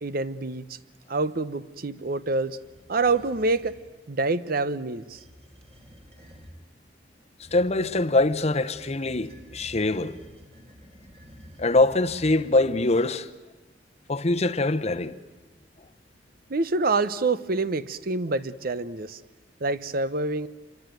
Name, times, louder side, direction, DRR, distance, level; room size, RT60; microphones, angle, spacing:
voice 1, 0.0-0.8 1.1-2.6 2.9-3.8 4.1-5.2 16.5-19.2 19.6-20.5, right 3 dB, 55° right, 0.8 m, -26 dB
sound 1, 2.6-3.8 5.0-6.6 7.4-12.9, equal, 35° right, 4.4 m, -50 dB
voice 2, 7.5-10.2 11.6-13.3 14.1-15.2, left 2 dB, 35° left, 0.9 m, -23 dB
27.0 x 22.5 x 9.2 m
head